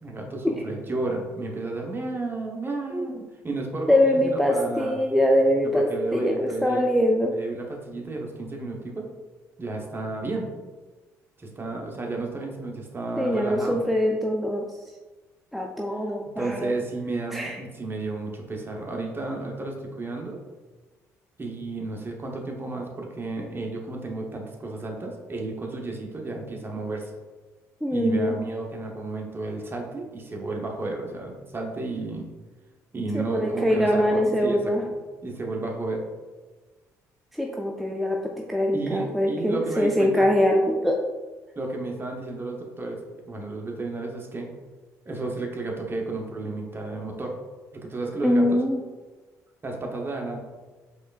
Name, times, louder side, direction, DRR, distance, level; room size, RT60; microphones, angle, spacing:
voice 1, 0.0-5.0 5.6-7.0 7.3-9.1 9.6-10.5 11.4-13.8 16.4-20.4 21.4-27.1 27.9-32.3 32.9-34.9 35.2-36.0 38.7-40.2 41.6-43.0 43.3-44.5 45.1-47.3 47.7-48.6 49.6-50.4, right 2 dB, 30° right, 1 dB, 0.9 m, -32 dB
voice 2, 3.9-7.3 13.2-14.7 15.5-16.7 17.3-17.6 27.8-28.4 33.1-34.8 37.3-41.0 48.2-48.8, left 1 dB, ahead, 1 dB, 0.4 m, -23 dB
4.2 x 3.2 x 2.4 m, 1.3 s
hypercardioid pair, 55°, 8 cm